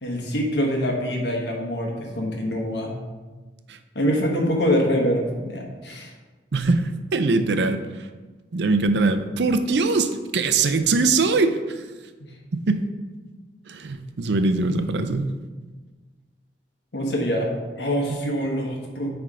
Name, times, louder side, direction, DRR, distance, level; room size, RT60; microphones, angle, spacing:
voice 1, 0.0-2.9 3.9-6.1 12.2-12.3 16.9-17.5 17.8-19.1, equal, 75° left, 0 dB, 1.4 m, -24 dB
voice 2, 6.5-7.8 8.5-11.8 12.5-12.8 13.7-15.2, right 3 dB, 80° right, 9 dB, 0.5 m, -22 dB
8.9 x 3.6 x 4.8 m, 1.3 s
head